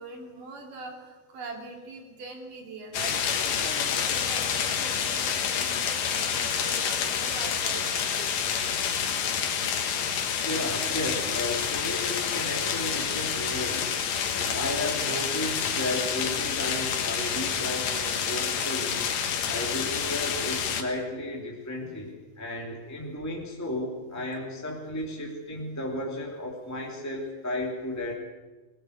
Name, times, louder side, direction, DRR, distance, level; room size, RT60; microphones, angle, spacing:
voice 1, 0.0-8.4 19.2-19.6 21.8-22.0 24.1-24.3, right 3 dB, 85° right, 2 dB, 4.7 m, -43 dB
sound 1, 2.9-20.8, left 7 dB, 85° left, 3.3 m, -28 dB
voice 2, 10.4-14.0 14.3-19.1 19.4-28.1, left 1 dB, 5° left, -2 dB, 2.8 m, -34 dB
22.5 x 19.0 x 8.1 m, 1.2 s
omnidirectional pair, 3.7 m